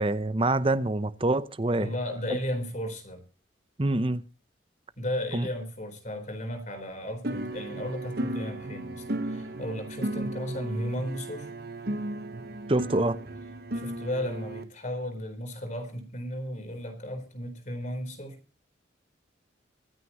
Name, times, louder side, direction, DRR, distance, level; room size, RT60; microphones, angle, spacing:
voice 1, 0.0-1.9 3.8-4.2 5.3-5.4 12.7-13.2, right 2 dB, 30° right, 0.7 m, -25 dB
voice 2, 1.8-3.2 5.0-11.5 13.7-18.4, equal, 40° left, 4.0 m, -34 dB
sound 1, 7.2-14.6, right 1 dB, 55° right, 1.2 m, -35 dB
25.5 x 9.6 x 3.0 m
head